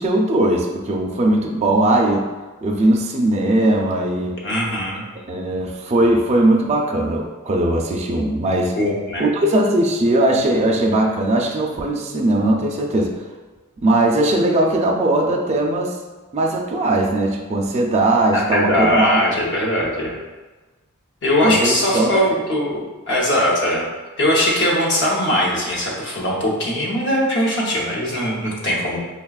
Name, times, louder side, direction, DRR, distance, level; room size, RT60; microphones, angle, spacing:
voice 1, 0.0-2.3 2.6-4.4 5.3-8.8 9.2-13.1 13.8-16.0 16.3-19.2 21.4-22.2, right 1 dB, 30° right, 0 dB, 0.4 m, -19 dB
voice 2, 4.4-5.0 8.8-9.2 18.3-20.2 21.2-22.8 23.1-23.8 24.2-29.0, equal, 55° left, -3 dB, 0.8 m, -20 dB
5.6 x 2.3 x 2.3 m, 1.3 s
head